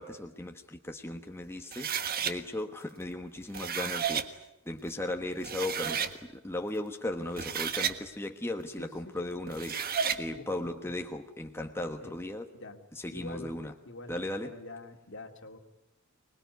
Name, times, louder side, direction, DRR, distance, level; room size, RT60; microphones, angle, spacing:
voice 1, 0.0-1.9 2.2-4.4 4.7-12.5 12.9-13.7 14.1-14.6, left 1 dB, 10° left, 4 dB, 1.2 m, -37 dB
sound 1, 1.7-2.3 3.4-4.3 5.1-5.2 5.4-6.1 7.2-8.0 9.5-10.2, right 7 dB, 45° right, 1.4 m, -32 dB
voice 2, 10.3-10.7 12.0-12.1 12.5-12.8 13.1-13.6 13.9-14.1 14.4-15.6, left 2 dB, 60° left, 6 dB, 2.3 m, -45 dB
25.5 x 21.0 x 9.4 m, 0.92 s
head